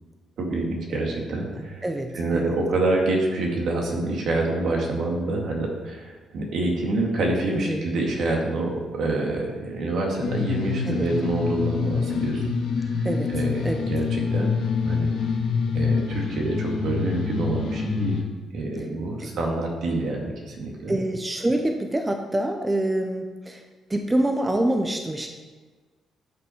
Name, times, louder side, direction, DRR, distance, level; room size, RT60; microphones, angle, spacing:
voice 1, 0.4-1.8 2.1-12.5 12.7-14.6 14.8-15.1 15.7-18.2 18.5-21.0, right 2 dB, 70° right, -1 dB, 2.4 m, -27 dB
voice 2, 1.6-2.5 7.5-7.8 10.9-11.1 13.0-13.3 13.6-13.9 19.1-19.2 20.9-23.6 23.9-25.3, right 1 dB, 15° right, 4 dB, 0.9 m, -26 dB
sound 1, 10.2-18.2, left 5 dB, 80° left, 1.8 m, -26 dB
11.5 x 6.0 x 4.7 m, 1.4 s
cardioid pair, 90°, 0 cm